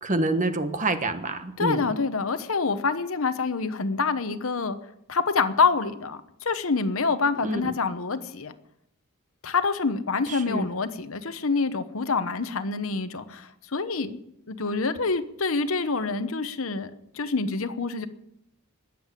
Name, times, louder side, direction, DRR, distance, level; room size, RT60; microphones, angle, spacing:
voice 1, 0.0-1.9 7.4-7.7 10.3-10.6, right 2 dB, 35° right, 8 dB, 1.3 m, -27 dB
voice 2, 1.6-4.8 5.1-8.5 9.4-14.2 14.5-16.9 17.1-18.1, left 4 dB, 65° left, 11 dB, 1.0 m, -26 dB
20.0 x 7.6 x 8.3 m, 0.80 s
head